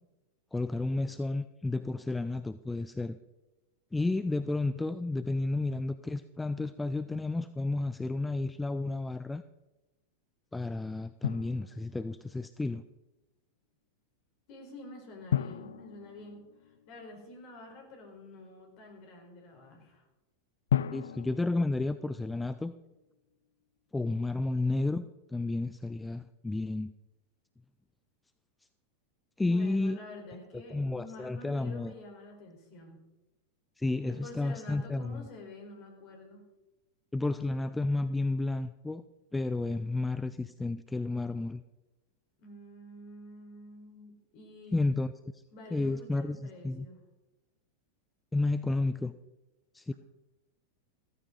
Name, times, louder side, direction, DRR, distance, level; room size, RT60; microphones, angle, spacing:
voice 1, 0.5-3.2 3.9-9.4 10.5-12.8 20.9-22.7 23.9-26.9 29.4-30.0 30.7-31.9 33.8-35.3 37.1-39.0 39.3-41.6 44.7-45.1 45.7-46.9 48.3-49.1 49.7-49.9, left 2 dB, 10° left, 13 dB, 0.5 m, -31 dB
Drum, 11.2-12.3 15.3-17.1 20.7-22.7, left 10 dB, 65° left, 0.4 m, -35 dB
voice 2, 14.5-20.0 29.4-33.0 34.0-36.4 42.4-44.8 45.5-47.0, left 2 dB, 45° left, 2 dB, 4.5 m, -48 dB
15.0 x 14.5 x 4.0 m, 1.0 s
figure-of-eight pair, 90°, 0 cm